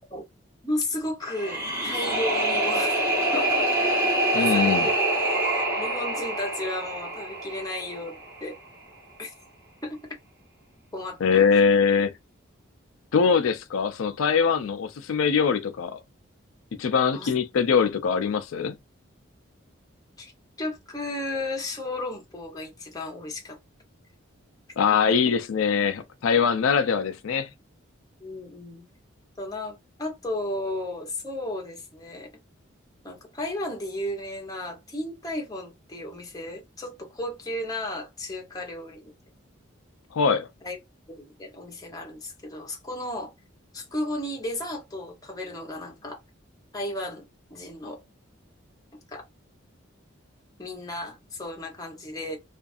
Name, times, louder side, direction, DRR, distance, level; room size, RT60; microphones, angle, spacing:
voice 1, 0.6-3.1 3.3-3.9 4.3-4.9 5.8-8.6 9.2-9.3 9.8-10.0 10.9-11.5 17.1-17.3 20.2-20.3 20.6-23.6 24.9-25.3 28.2-28.8 29.4-32.3 33.0-39.1 40.6-40.8 41.1-43.3 43.7-46.2 46.7-47.2 47.5-48.0 49.1-49.2 50.6-52.4, left 1 dB, 20° left, 0.8 m, -34 dB
sound 1, 1.2-8.3, right 1 dB, 10° right, 0.9 m, -25 dB
voice 2, 4.3-4.9 11.2-12.1 13.1-16.0 16.8-18.7 24.8-27.5 40.1-40.5, left 6 dB, 80° left, 0.4 m, -22 dB
2.5 x 2.4 x 2.4 m
head